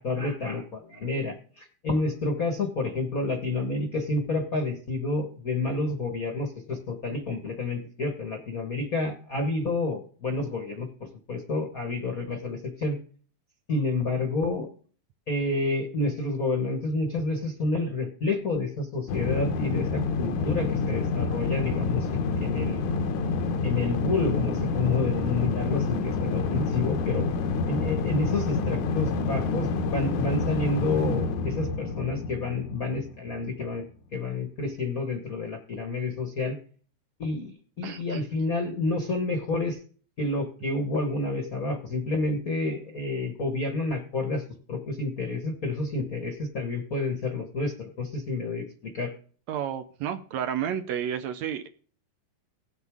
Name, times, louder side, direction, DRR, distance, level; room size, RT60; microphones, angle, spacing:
voice 1, 0.0-13.0 13.7-14.7 15.3-22.9 23.6-27.3 27.7-33.8 34.1-36.6 37.2-39.8 40.2-44.4 44.7-49.1, left 3 dB, 45° left, 1.2 m, -29 dB
sound 1, 19.1-33.5, left 4 dB, 80° left, 2.3 m, -28 dB
voice 2, 37.8-38.2 49.5-51.7, right 9 dB, 75° right, 1.9 m, -31 dB
17.5 x 8.1 x 3.6 m
omnidirectional pair, 3.5 m